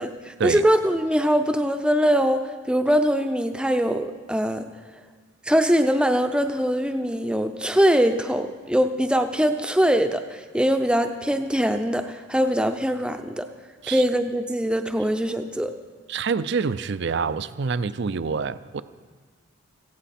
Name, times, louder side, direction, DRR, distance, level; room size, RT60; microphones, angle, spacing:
voice 1, 0.0-4.7 5.4-13.5 13.9-15.7, equal, 5° right, 7 dB, 0.6 m, -22 dB
voice 2, 16.1-18.8, right 5 dB, 50° right, 14 dB, 0.4 m, -26 dB
17.0 x 15.5 x 4.3 m, 1.5 s
head